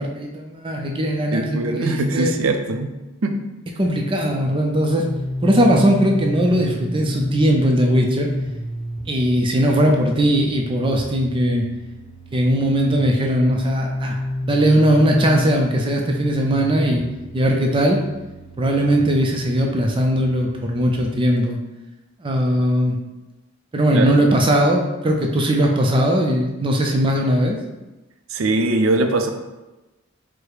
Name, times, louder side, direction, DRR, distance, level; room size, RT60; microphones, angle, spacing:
voice 1, 0.0-2.3 3.8-5.1 5.4-8.3 9.1-11.7 12.3-17.1 17.3-18.0 18.6-21.6 22.2-23.0 23.7-27.6, equal, 25° right, 1 dB, 0.4 m, -19 dB
voice 2, 1.3-2.9 3.2-3.4 23.9-24.1 28.3-29.3, right 2 dB, 80° right, 6 dB, 0.5 m, -21 dB
sound 1, 5.0-21.0, left 1 dB, 20° left, 0.7 m, -31 dB
4.8 x 2.0 x 4.6 m, 1.1 s
head